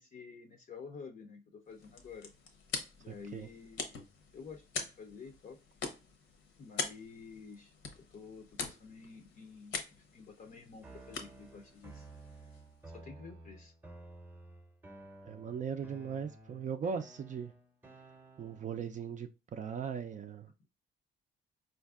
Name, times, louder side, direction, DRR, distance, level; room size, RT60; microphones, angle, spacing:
voice 1, 0.0-2.6 3.0-4.1 4.3-5.6 6.6-12.1 12.9-13.7, left 5 dB, 45° left, 0.5 m, -50 dB
sound 1, 1.6-12.9, left 5 dB, 70° left, 0.8 m, -44 dB
voice 2, 3.1-3.5 15.3-17.5 18.4-20.5, right 6 dB, 40° right, 0.4 m, -39 dB
sound 2, 10.8-18.8, right 2 dB, 10° right, 0.7 m, -53 dB
4.4 x 2.5 x 2.3 m
cardioid pair, 90°, 20 cm